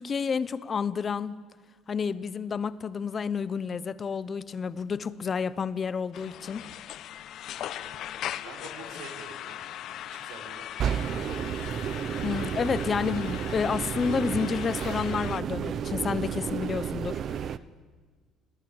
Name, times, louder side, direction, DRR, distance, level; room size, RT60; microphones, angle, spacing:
voice 1, 0.0-1.4 1.9-6.6 12.2-17.4, left 6 dB, 30° left, 18 dB, 0.8 m, -30 dB
sound 1, 6.1-15.4, left 12 dB, 55° left, 0.8 m, -39 dB
voice 2, 7.6-8.1 8.4-9.6 10.0-10.7, right 5 dB, 80° right, 6 dB, 5.1 m, -46 dB
sound 2, 10.8-17.6, right 8 dB, 45° right, 0.7 m, -32 dB
28.0 x 19.5 x 8.8 m, 1.5 s
cardioid pair, 155°, 0 cm